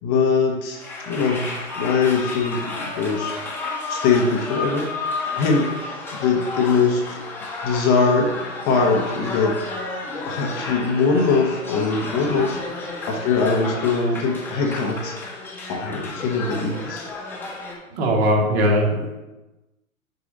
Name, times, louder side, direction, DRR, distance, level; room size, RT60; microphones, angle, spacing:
voice 1, 0.0-3.4 3.9-7.2 7.6-8.3 8.6-9.5 10.2-17.1, left 4 dB, 25° left, 0 dB, 1.0 m, -22 dB
sound 1, 0.7-17.7, left 3 dB, 5° left, 1.3 m, -32 dB
voice 2, 11.9-12.3 17.9-19.1, equal, 45° right, -1 dB, 2.1 m, -21 dB
6.5 x 4.7 x 5.3 m, 1.1 s
hypercardioid pair, 125°, 43 cm